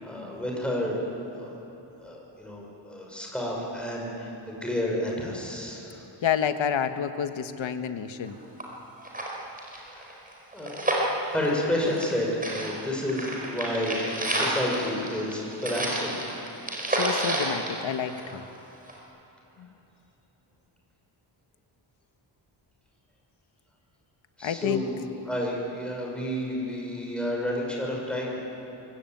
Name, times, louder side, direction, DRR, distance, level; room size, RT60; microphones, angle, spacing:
voice 1, 0.0-1.0 1.4-1.5 2.0-6.0 9.7-10.1 10.5-10.7 11.2-16.2 24.4-28.4, left 1 dB, ahead, -3 dB, 6.0 m, -30 dB
voice 2, 6.2-8.4 16.9-18.4 19.6-19.7 24.4-24.8, left 8 dB, 85° left, 8 dB, 1.5 m, -29 dB
sound 1, 8.2-8.3 8.6-8.7 9.0-12.2 12.4-18.5 18.9-19.0, right 1 dB, 20° right, 4.8 m, -30 dB
24.0 x 23.0 x 9.2 m, 3.0 s
wide cardioid pair, 170°, 45 cm